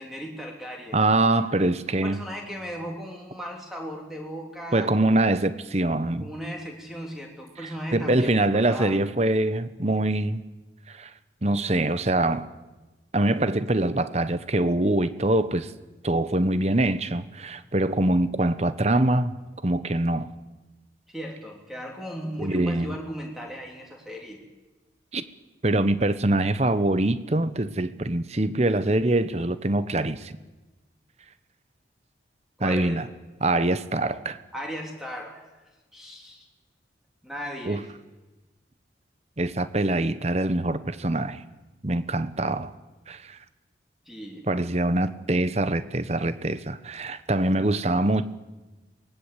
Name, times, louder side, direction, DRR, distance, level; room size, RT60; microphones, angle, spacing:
voice 1, 0.0-1.0 1.6-1.8 2.0-4.9 6.2-8.9 21.1-24.4 32.6-33.0 34.5-35.4 35.9-36.5 37.2-37.9 44.1-44.4, equal, ahead, 0 dB, 3.1 m, -37 dB
voice 2, 0.9-2.2 4.7-6.3 7.6-10.4 10.9-11.1 11.4-12.5 13.1-15.7 16.0-19.3 19.6-20.3 22.4-22.9 25.1-25.2 25.6-30.3 32.6-33.1 33.4-34.4 37.6-37.8 39.4-41.4 41.8-42.7 43.1-43.4 44.5-48.3, right 2 dB, 35° right, 13 dB, 1.0 m, -24 dB
23.5 x 19.5 x 8.3 m, 1.1 s
head